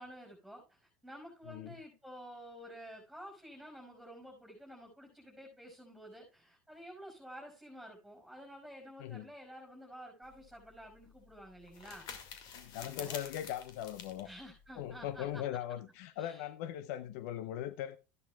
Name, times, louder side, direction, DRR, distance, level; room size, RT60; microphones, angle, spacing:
voice 1, 0.0-12.1 12.8-13.2 14.2-15.4 16.2-16.5, equal, ahead, 5.6 m, -51 dB
sound 1, 10.2-15.4, left 7 dB, 55° left, 2.1 m, -49 dB
voice 2, 12.5-14.3 14.8-18.0, left 11 dB, 70° left, 0.6 m, -40 dB
14.0 x 10.5 x 2.3 m
supercardioid pair, 105°, 9 cm